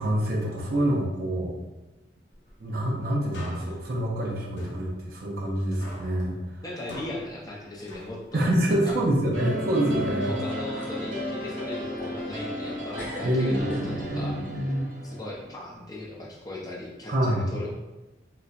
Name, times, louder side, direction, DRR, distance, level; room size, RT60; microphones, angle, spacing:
voice 1, 0.0-1.5 2.6-6.3 8.3-10.3 13.2-14.8 17.1-17.5, right 1 dB, 55° right, -3 dB, 0.5 m, -26 dB
sound 1, 2.3-3.2 3.5-4.0 4.4-4.5 5.4-5.5 6.2-6.3 6.7-7.1 7.4-7.5 10.0-10.1 10.5-11.0 11.4-12.7 12.9-14.2, left 1 dB, 50° left, 0.7 m, -44 dB
sound 2, 3.3-5.5 5.8-8.5 8.9-10.5, left 1 dB, 85° left, 0.7 m, -46 dB
voice 2, 6.6-9.0 10.2-14.3 15.0-17.7, left 1 dB, 20° left, -3 dB, 0.6 m, -38 dB
sound 3, 9.3-15.5, left 1 dB, 85° right, 0.8 m, -34 dB
4.0 x 2.1 x 2.4 m, 1.1 s
head